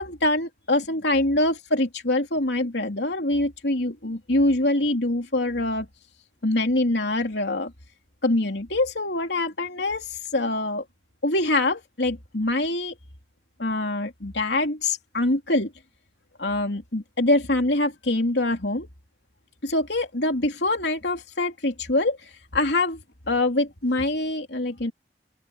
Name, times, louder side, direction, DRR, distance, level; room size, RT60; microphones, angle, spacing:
voice 1, 0.0-5.9 6.4-7.7 8.2-10.8 11.2-12.9 13.6-15.7 16.4-18.9 19.6-23.0 23.3-24.9, left 2 dB, 75° left, 3.1 m, -24 dB
open air
head